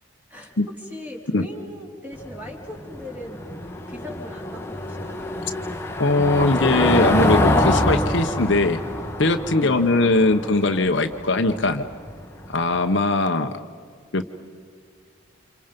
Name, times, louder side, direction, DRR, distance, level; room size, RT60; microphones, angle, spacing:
voice 1, 0.3-3.4 3.9-5.3 9.6-10.0, left 1 dB, 10° right, 0 dB, 3.6 m, -39 dB
Car passing by / Engine, 2.1-12.8, left 1 dB, 10° left, 1.5 m, -25 dB
voice 2, 6.0-8.8 9.2-11.9 12.5-13.5 14.1-14.3, left 2 dB, 60° left, 6 dB, 1.1 m, -20 dB
29.5 x 27.5 x 5.3 m, 2.1 s
head